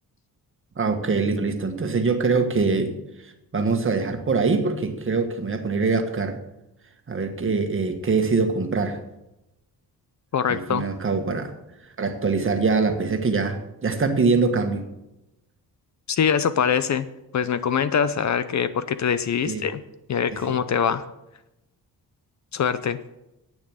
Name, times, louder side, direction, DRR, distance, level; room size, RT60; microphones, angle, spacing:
voice 1, 0.8-6.4 7.1-9.0 10.5-11.5 12.0-14.9 19.5-19.6 20.3-20.6, right 4 dB, 35° right, 6 dB, 1.5 m, -24 dB
voice 2, 10.3-10.8 16.1-17.1 17.3-19.8 20.1-21.0 22.5-23.0, left 7 dB, 50° left, 13 dB, 0.6 m, -23 dB
10.5 x 9.0 x 7.7 m, 0.92 s
wide cardioid pair, 150°, 38 cm